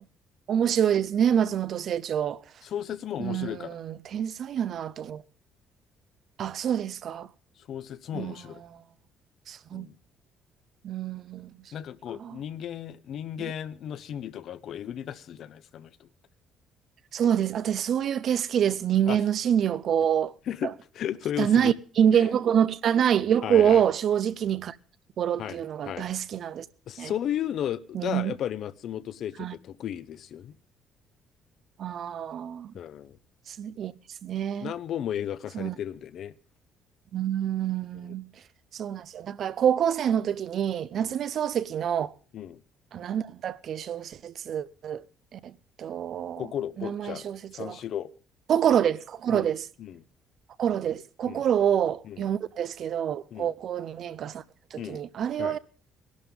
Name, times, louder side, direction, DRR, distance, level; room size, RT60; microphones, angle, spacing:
voice 1, 0.5-2.4 3.2-5.2 6.4-7.3 8.1-8.3 8.7-8.8 9.5-9.9 10.8-11.6 12.2-12.4 17.1-20.3 20.6-20.7 21.4-24.8 25.2-26.7 27.0-27.1 27.9-28.3 29.4-29.6 31.8-32.7 33.5-33.9 34.2-34.7 35.5-35.8 37.1-38.3 38.7-42.1 42.9-45.0 45.3-45.5 45.8-46.5 46.8-47.8 48.5-49.7 50.6-54.4 54.7-55.6, right 9 dB, 45° right, 0.5 m, -26 dB
voice 2, 2.6-3.8 7.7-8.6 9.7-9.9 11.7-16.1 19.1-19.2 20.5-21.7 22.1-22.3 23.4-23.8 25.4-26.1 26.9-30.5 32.7-33.2 34.6-36.3 38.0-38.1 41.0-41.2 42.3-42.6 46.4-47.3 47.5-48.1 49.3-49.5 49.8-50.0 51.2-51.4 52.1-52.2 53.3-53.5 54.8-55.0 55.4-55.6, left 10 dB, 50° left, 0.6 m, -34 dB
20.5 x 11.5 x 3.6 m
cardioid pair, 165°, 0 cm